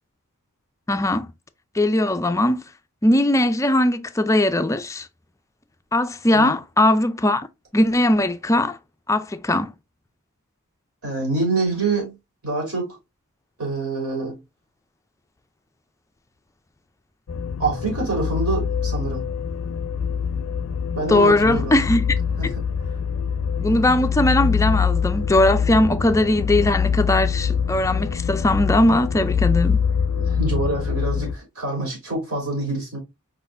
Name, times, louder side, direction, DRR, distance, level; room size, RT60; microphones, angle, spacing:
voice 1, 0.9-1.3 1.7-2.6 3.0-5.1 5.9-7.5 7.7-8.8 9.1-9.7 21.1-22.0 22.4-22.5 23.6-29.8, left 1 dB, 15° left, 0.4 m, -19 dB
voice 2, 11.0-12.2 12.4-13.0 13.6-14.4 17.6-19.2 20.9-21.8 22.4-22.5 30.2-33.0, right 3 dB, 70° right, 3.2 m, -26 dB
sound 1, 17.3-31.3, left 6 dB, 70° left, 0.5 m, -24 dB
4.9 x 4.1 x 2.5 m
head